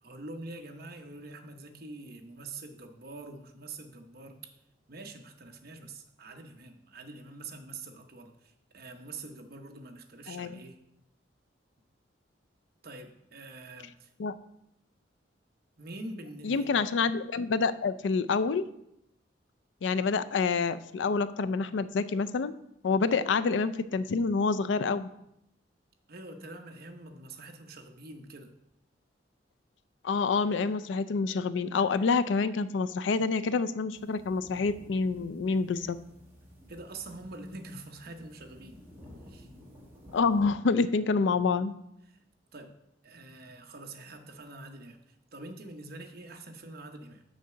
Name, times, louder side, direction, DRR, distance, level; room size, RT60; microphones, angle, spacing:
voice 1, 0.0-4.6 4.9-10.8 12.8-14.1 15.8-16.8 20.0-20.1 26.1-28.5 36.7-38.8 39.3-39.5 42.1-42.2 42.5-42.8 43.0-47.2, right 2 dB, 55° right, 4 dB, 0.9 m, -45 dB
voice 2, 10.3-10.6 14.2-14.3 16.4-18.6 19.8-22.5 22.8-25.1 30.0-36.0 40.1-41.7, left 4 dB, 75° left, 13 dB, 0.4 m, -27 dB
sound 1, 33.9-40.5, equal, 15° right, 1.8 m, -53 dB
6.5 x 4.7 x 6.6 m, 0.80 s
head